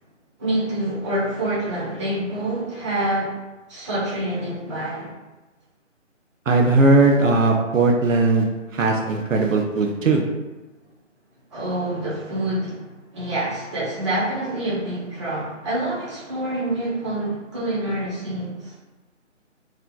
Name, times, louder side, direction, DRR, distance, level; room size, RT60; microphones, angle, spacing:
voice 1, 0.4-3.4 3.7-5.1 11.5-12.8 13.1-18.7, right 1 dB, 25° right, -9 dB, 1.1 m, -26 dB
voice 2, 6.5-10.2, right 3 dB, 80° right, 2 dB, 0.8 m, -18 dB
3.1 x 2.3 x 3.9 m, 1.1 s
hypercardioid pair, 165°, 38 cm